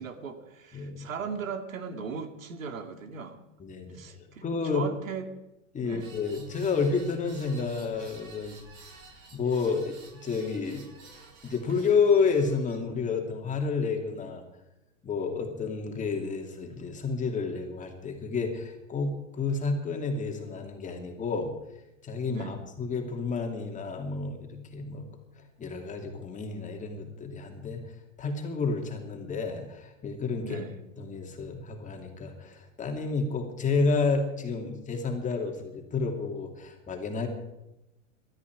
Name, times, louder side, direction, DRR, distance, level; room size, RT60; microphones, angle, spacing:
voice 1, 0.0-3.4 3.9-5.3 5.8-6.1 22.3-22.6 30.4-30.8, right 6 dB, 85° right, 7 dB, 2.4 m, -38 dB
voice 2, 0.7-1.1 3.6-4.8 5.7-8.6 9.3-10.0 10.2-10.8 11.4-14.4 15.0-21.5 22.0-25.1 25.6-27.8 28.2-30.6 31.0-37.3, left 4 dB, 20° left, 3 dB, 2.7 m, -30 dB
sound 1, 6.0-12.8, right 3 dB, 40° right, 7.2 m, -51 dB
19.5 x 13.5 x 4.8 m, 0.93 s
hypercardioid pair, 120°, 39 cm